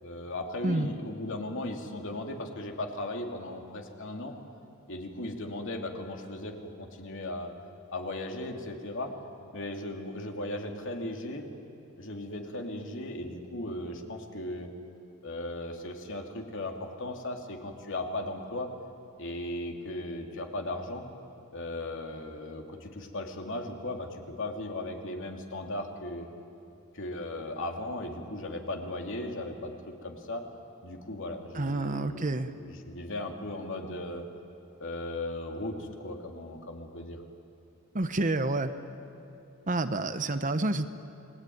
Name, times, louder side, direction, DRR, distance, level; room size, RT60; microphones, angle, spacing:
voice 1, 0.0-4.3 4.9-7.5 7.9-9.1 9.5-11.5 12.0-14.7 15.2-18.7 19.2-21.0 21.5-26.3 26.9-30.4 30.8-34.2 34.8-37.2, left 1 dB, 60° left, 2 dB, 2.9 m, -37 dB
voice 2, 31.5-32.5 37.9-38.7 39.7-40.9, right 2 dB, 35° right, 10 dB, 1.0 m, -28 dB
29.0 x 21.0 x 9.5 m, 2.7 s
head